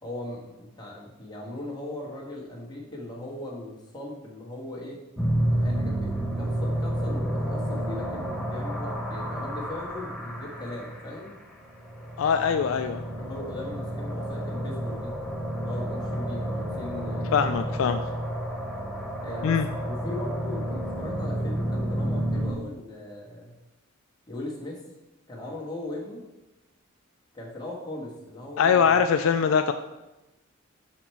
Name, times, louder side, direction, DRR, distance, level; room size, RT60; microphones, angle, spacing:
voice 1, 0.0-5.0 5.5-11.3 13.1-15.1 15.6-17.9 19.2-23.6 24.3-24.8 25.3-26.2 27.3-29.0, left 1 dB, 20° left, -4 dB, 1.4 m, -39 dB
sound 1, 5.2-22.5, right 1 dB, 5° left, 0.7 m, -30 dB
voice 2, 12.2-13.0 17.3-18.0 19.4-19.7 28.6-29.7, left 6 dB, 65° left, 7 dB, 0.3 m, -22 dB
5.9 x 4.2 x 4.5 m, 0.99 s
head